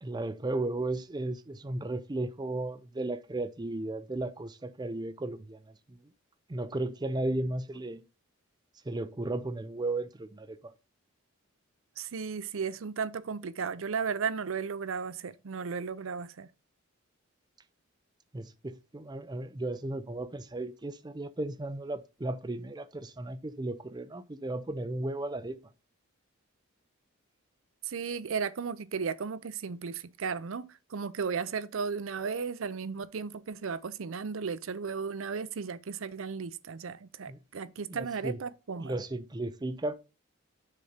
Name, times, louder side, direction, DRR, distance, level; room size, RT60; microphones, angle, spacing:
voice 1, 0.0-6.0 6.5-8.0 8.9-10.7 18.3-25.6 37.3-37.4 37.9-38.4 38.8-39.9, right 2 dB, 20° right, 0.5 m, -35 dB
voice 2, 12.0-16.5 27.8-39.0, right 5 dB, 70° right, 0.5 m, -35 dB
6.6 x 4.2 x 5.0 m
head